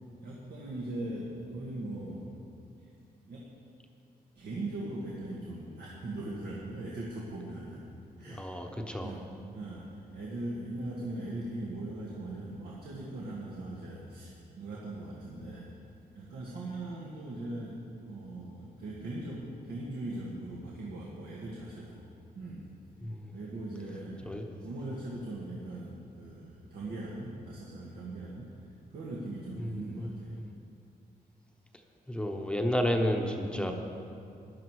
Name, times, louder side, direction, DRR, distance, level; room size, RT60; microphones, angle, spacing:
voice 1, 0.2-2.3 2.8-2.9 3.3-3.4 4.3-7.9 8.2-15.7 16.1-22.1 22.3-22.7 23.3-24.2 24.6-28.5 28.9-30.3 33.5-33.7, right 2 dB, 90° right, -4 dB, 1.7 m, -40 dB
voice 2, 8.4-9.1 23.0-23.2 24.3-24.5 29.6-30.1 32.1-33.7, equal, 5° left, 3 dB, 0.8 m, -31 dB
14.5 x 11.0 x 4.7 m, 2.5 s
wide cardioid pair, 145°, 16 cm